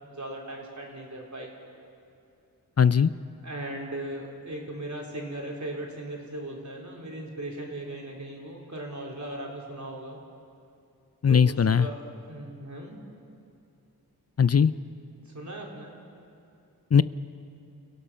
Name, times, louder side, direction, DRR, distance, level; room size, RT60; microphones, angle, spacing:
voice 1, 0.0-1.5 3.4-10.2 11.3-13.0 15.2-15.9, right 1 dB, 45° right, -2 dB, 4.0 m, -38 dB
voice 2, 2.8-3.1 11.2-11.9 14.4-14.7 16.9-17.0, left 7 dB, 40° left, 16 dB, 0.5 m, -19 dB
29.5 x 16.5 x 5.7 m, 2.6 s
wide cardioid pair, 55°, 39 cm